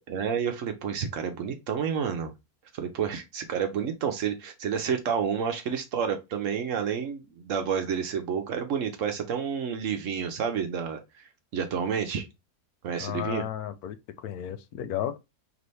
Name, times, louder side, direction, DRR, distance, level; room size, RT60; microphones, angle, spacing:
voice 1, 0.1-2.3 2.7-12.3 12.8-13.5, right 7 dB, 65° right, 1.0 m, -30 dB
voice 2, 13.0-14.0 14.2-15.2, left 10 dB, 80° left, 1.1 m, -33 dB
3.3 x 3.1 x 4.0 m
omnidirectional pair, 1.6 m